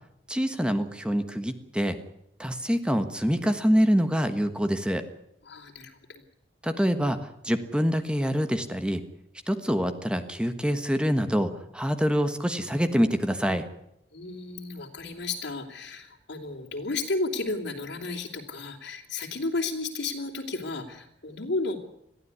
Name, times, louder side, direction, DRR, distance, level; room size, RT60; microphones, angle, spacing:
voice 1, 0.3-2.0 2.4-5.1 6.6-9.0 9.5-13.7, equal, 5° right, 8 dB, 1.3 m, -25 dB
voice 2, 5.4-6.2 14.1-21.8, left 3 dB, 90° left, -1 dB, 3.1 m, -33 dB
22.0 x 14.5 x 9.8 m, 0.81 s
head